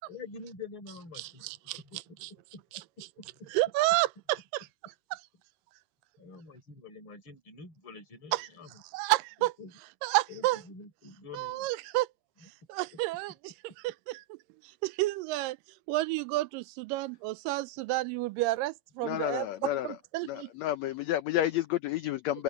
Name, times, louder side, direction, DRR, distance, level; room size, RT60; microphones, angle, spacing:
voice 1, 0.1-1.5 1.9-2.0 2.5-2.6 3.2-3.5 6.2-8.7 9.6-9.7 10.3-11.7, left 4 dB, 35° left, 5.2 m, -46 dB
voice 2, 1.1-2.3 2.7-2.8 3.5-5.2 8.3-8.5 8.9-9.5 10.0-10.6 11.3-12.1 12.7-14.4 14.8-15.6 15.9-20.5, right 19 dB, 85° right, 2.2 m, -31 dB
voice 3, 19.0-20.0 20.2-22.4, left 13 dB, 75° left, 1.6 m, -30 dB
omnidirectional pair, 3.9 m